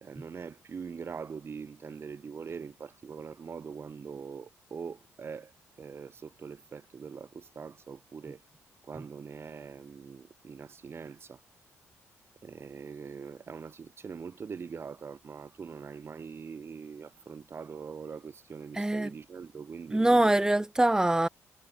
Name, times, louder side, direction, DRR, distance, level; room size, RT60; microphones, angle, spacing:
voice 1, 0.0-8.4 8.8-11.4 12.4-20.5, right 6 dB, 45° right, 1.0 m, -43 dB
voice 2, 18.8-19.1 19.9-21.3, right 1 dB, 10° right, 0.4 m, -23 dB
supercardioid pair, 70°, 6 cm